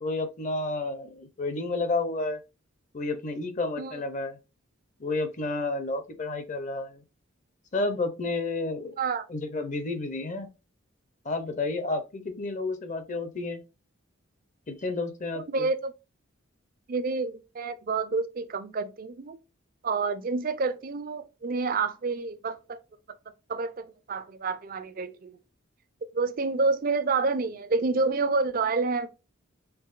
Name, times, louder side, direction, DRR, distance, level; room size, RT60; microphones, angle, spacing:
voice 1, 0.0-2.4 2.9-4.4 5.0-7.0 7.7-8.9 9.3-10.5 11.2-13.6 14.7-15.7, left 2 dB, 35° left, 0.6 m, -31 dB
voice 2, 9.0-9.3 15.3-15.9 16.9-19.4 19.8-22.8 23.5-25.4 26.1-29.1, right 4 dB, 45° right, 0.4 m, -28 dB
4.6 x 3.4 x 2.4 m
head